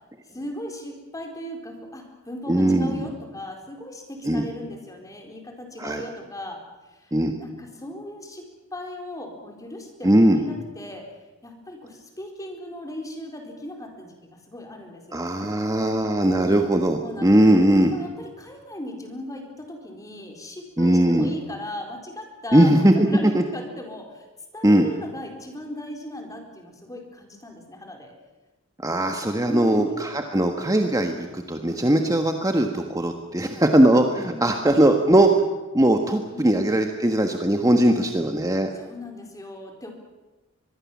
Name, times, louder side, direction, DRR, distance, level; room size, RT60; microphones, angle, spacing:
voice 1, 0.3-6.6 6.9-7.1 7.4-8.5 8.7-11.1 11.4-14.1 14.5-15.2 17.0-17.4 17.9-24.3 24.5-28.1 29.4-30.0 34.2-34.5 36.3-36.6 38.7-39.9, left 1 dB, 15° left, 3 dB, 4.2 m, -37 dB
voice 2, 2.5-3.0 4.2-4.5 5.8-6.0 7.1-7.3 10.0-10.4 15.1-18.0 20.8-21.3 22.5-23.1 23.3-23.4 24.6-24.9 28.8-35.4 35.7-38.7, right 1 dB, 15° right, 4 dB, 1.5 m, -19 dB
23.5 x 22.0 x 7.4 m, 1.1 s
head